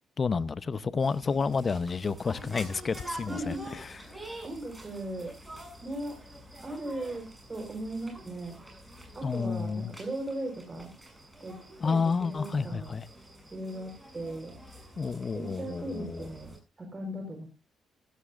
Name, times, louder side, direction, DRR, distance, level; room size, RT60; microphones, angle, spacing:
voice 1, 0.2-3.5 9.2-9.9 11.8-13.1 15.0-16.3, left 5 dB, 40° left, 0.8 m, -30 dB
sound 1, 1.0-16.6, right 1 dB, 10° right, 7.4 m, -47 dB
voice 2, 3.3-3.7 4.0-5.3 5.8-6.2 6.6-8.6 9.1-10.9 11.4-11.6 11.8-13.0 13.5-14.6 15.3-16.5 16.8-17.5, right 1 dB, 25° right, 4.4 m, -38 dB
15.0 x 15.0 x 2.5 m
cardioid pair, 90°, 0 cm